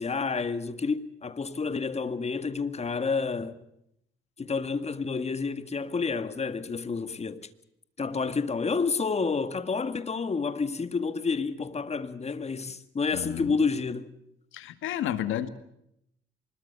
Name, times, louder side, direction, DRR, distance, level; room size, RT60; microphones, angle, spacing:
voice 1, 0.0-3.6 4.4-7.4 8.0-14.1, left 4 dB, 30° left, 1.9 m, -29 dB
voice 2, 13.1-13.6 14.5-15.5, left 11 dB, 85° left, 2.0 m, -31 dB
25.0 x 21.5 x 6.9 m
cardioid pair, 90°, 20 cm